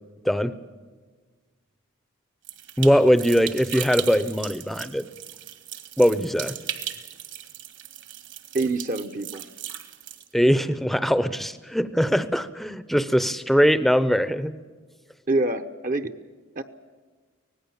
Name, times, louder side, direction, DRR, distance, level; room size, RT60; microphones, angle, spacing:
sound 1, 2.4-10.3, right 10 dB, 55° right, 1.8 m, -37 dB
voice 1, 2.8-5.0 6.0-6.5 10.3-14.6, equal, ahead, 13 dB, 0.7 m, -21 dB
voice 2, 8.5-9.4 15.3-16.1 16.6-16.7, right 2 dB, 40° right, 8 dB, 0.9 m, -26 dB
25.0 x 18.5 x 7.2 m, 1.4 s
head